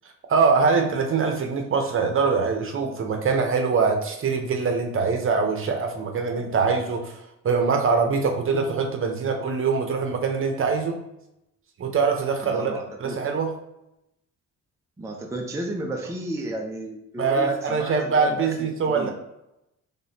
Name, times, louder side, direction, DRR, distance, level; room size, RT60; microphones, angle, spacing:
voice 1, 0.3-11.0 11.8-12.7 13.0-13.5 17.2-19.1, right 5 dB, 45° right, 4 dB, 0.8 m, -23 dB
voice 2, 12.4-13.2 15.0-19.1, right 1 dB, 10° right, 1 dB, 0.5 m, -33 dB
4.0 x 3.5 x 2.7 m, 0.86 s
cardioid pair, 90°, 30 cm